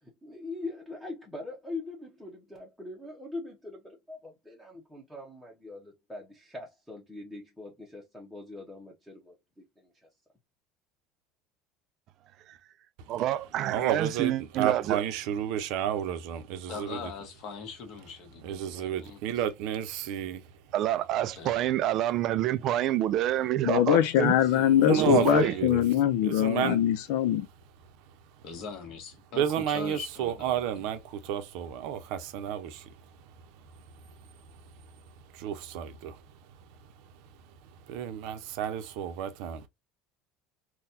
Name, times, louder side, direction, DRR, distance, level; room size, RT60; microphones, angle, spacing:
voice 1, 0.0-9.3 9.8-9.9, left 2 dB, ahead, 0.8 m, -42 dB
voice 2, 13.1-15.0 20.7-24.3 24.9-25.5, right 12 dB, 45° right, 0.3 m, -27 dB
voice 3, 13.7-17.1 18.4-20.4 24.5-25.8 26.2-26.8 28.1-28.5 29.3-39.7, right 10 dB, 65° right, 0.7 m, -32 dB
voice 4, 16.7-19.2 21.4-21.7 24.4-24.6 24.9-25.6 28.4-30.9, left 5 dB, 50° left, 1.2 m, -42 dB
voice 5, 23.6-27.5, left 11 dB, 75° left, 0.6 m, -23 dB
4.0 x 2.2 x 2.6 m
cardioid pair, 155°, 0 cm